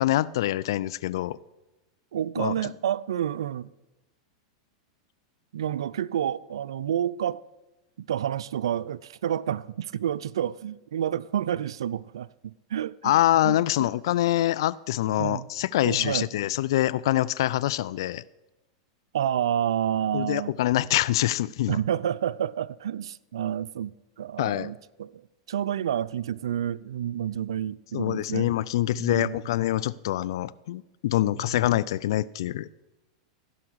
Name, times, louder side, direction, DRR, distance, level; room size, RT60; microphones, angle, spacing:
voice 1, 0.0-1.4 2.4-2.5 13.0-18.2 20.1-21.8 24.4-24.7 27.9-32.7, left 14 dB, 70° left, 0.4 m, -25 dB
voice 2, 2.1-3.7 5.5-7.4 8.1-13.2 13.4-13.9 15.2-15.5 15.8-16.3 19.1-20.5 21.7-25.2 25.5-28.5 28.9-29.4 31.3-31.6, right 10 dB, 80° right, 0.4 m, -29 dB
15.0 x 5.8 x 6.3 m
hypercardioid pair, 110°, 3 cm